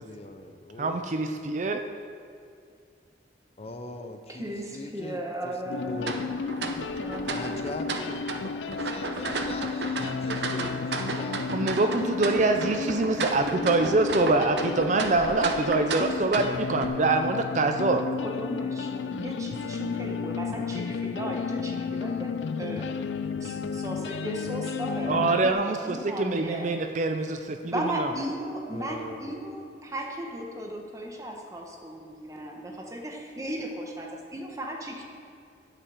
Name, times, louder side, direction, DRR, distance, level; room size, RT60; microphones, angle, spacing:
voice 1, 0.0-1.1 3.6-5.5 5.9-6.2 7.3-11.7 28.7-29.3, left 1 dB, 35° left, 6 dB, 0.7 m, -40 dB
voice 2, 0.8-1.8 11.5-18.0 25.1-28.1, right 3 dB, 45° right, 6 dB, 0.5 m, -25 dB
voice 3, 4.3-6.1 7.0-7.6 18.2-22.3 22.6-22.9 23.2-26.7 27.6-35.0, right 1 dB, 20° right, 1 dB, 1.2 m, -36 dB
sound 1, 5.7-25.5, left 5 dB, 90° left, 0.4 m, -33 dB
sound 2, 6.0-16.9, right 3 dB, 75° right, 0.8 m, -34 dB
12.0 x 5.7 x 7.2 m, 2.3 s
head